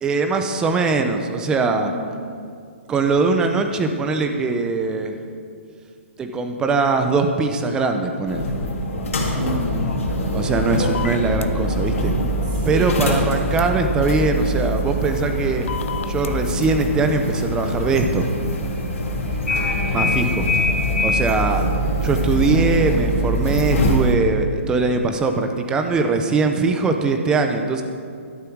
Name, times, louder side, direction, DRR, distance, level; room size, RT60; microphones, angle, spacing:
voice 1, 0.0-1.9 2.9-5.1 6.2-8.5 10.3-12.1 12.6-15.7 16.1-18.3 19.9-20.5 21.0-21.6 22.0-27.8, right 3 dB, 10° right, 6 dB, 0.7 m, -21 dB
voice 2, 1.8-2.2 9.4-9.9 10.8-11.5 12.1-12.3 12.7-13.1 19.3-20.1, right 1 dB, 35° right, -5 dB, 3.5 m, -31 dB
sound 1, 8.2-24.1, equal, 85° left, 2.5 m, -23 dB
sound 2, 10.8-11.5 13.6-13.7 15.7-16.3, left 7 dB, 70° left, 0.6 m, -29 dB
12.0 x 11.0 x 4.7 m, 2.3 s
hypercardioid pair, 160°, 7 cm